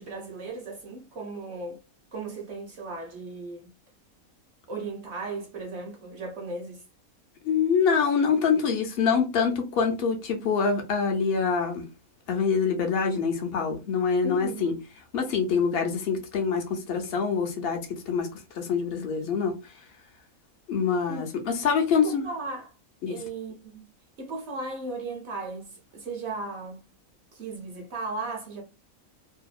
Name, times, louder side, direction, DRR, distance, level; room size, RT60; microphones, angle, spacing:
voice 1, 0.0-1.8 2.1-3.7 4.7-6.8 14.2-14.7 21.1-21.3 21.6-21.7 22.0-22.7 23.1-23.9 24.2-26.9 27.3-28.6, right 3 dB, 60° right, 0.8 m, -36 dB
voice 2, 7.4-11.9 12.3-14.7 15.1-18.3 18.5-19.6 20.7-22.2 23.0-23.2, left 6 dB, 60° left, 0.6 m, -25 dB
2.7 x 2.1 x 2.3 m
omnidirectional pair, 1.5 m